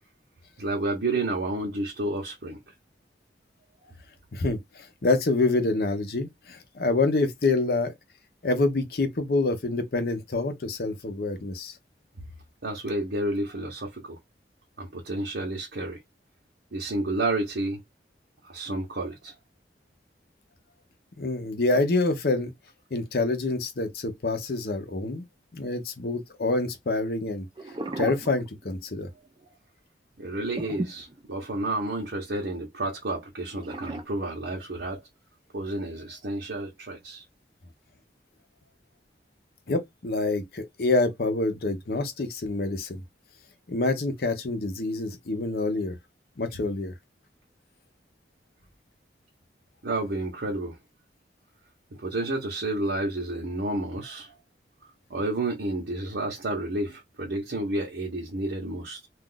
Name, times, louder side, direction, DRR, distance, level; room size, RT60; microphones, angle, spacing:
voice 1, 0.6-2.6 12.6-14.2 14.8-16.0 16.7-17.8 18.4-19.4 30.2-35.0 35.5-37.2 49.8-50.8 51.9-54.3 55.1-59.1, right 2 dB, 75° right, 0.8 m, -30 dB
voice 2, 4.3-7.9 8.4-11.7 21.2-22.5 22.9-25.2 25.5-27.5 28.0-29.1 39.7-43.0 43.7-45.9 46.4-46.9, left 2 dB, 55° left, 0.6 m, -26 dB
sound 1, 27.6-28.9 29.3-29.4 30.6-31.8 33.6-34.0, right 2 dB, 25° right, 0.5 m, -35 dB
2.4 x 2.4 x 3.7 m
head